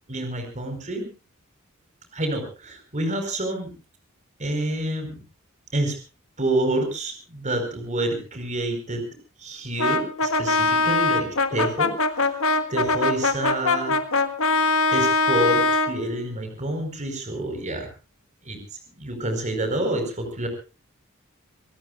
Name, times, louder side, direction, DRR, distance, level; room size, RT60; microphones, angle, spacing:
voice 1, 0.1-1.1 2.1-3.7 4.4-5.2 5.7-6.0 6.4-9.0 9.4-12.4 12.7-13.9 14.9-17.9 18.4-18.6 19.0-20.5, right 1 dB, 35° right, 5 dB, 4.9 m, -28 dB
Brass instrument, 9.8-16.0, left 3 dB, 70° left, 1.7 m, -22 dB
26.0 x 18.0 x 2.5 m, 0.33 s
head